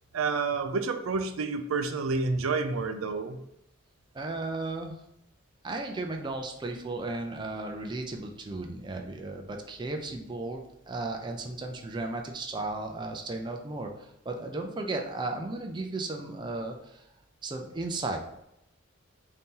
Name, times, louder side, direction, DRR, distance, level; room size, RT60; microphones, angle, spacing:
voice 1, 0.1-3.4, right 4 dB, 90° right, 7 dB, 0.5 m, -29 dB
voice 2, 4.1-5.0 5.6-17.0 17.4-18.4, right 2 dB, 20° right, 3 dB, 0.4 m, -35 dB
4.1 x 2.8 x 3.7 m, 0.83 s
head